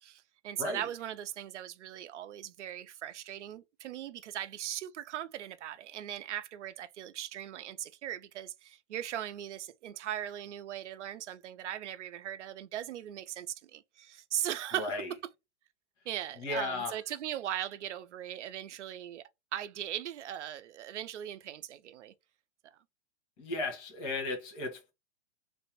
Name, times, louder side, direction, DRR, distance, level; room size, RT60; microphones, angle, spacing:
voice 1, 0.0-15.0 16.1-22.1, right 11 dB, 80° right, 0.6 m, -39 dB
voice 2, 14.8-15.1 16.4-17.0 23.4-24.9, left 3 dB, 45° left, 1.5 m, -35 dB
3.3 x 2.0 x 3.0 m
hypercardioid pair, 125°, 35 cm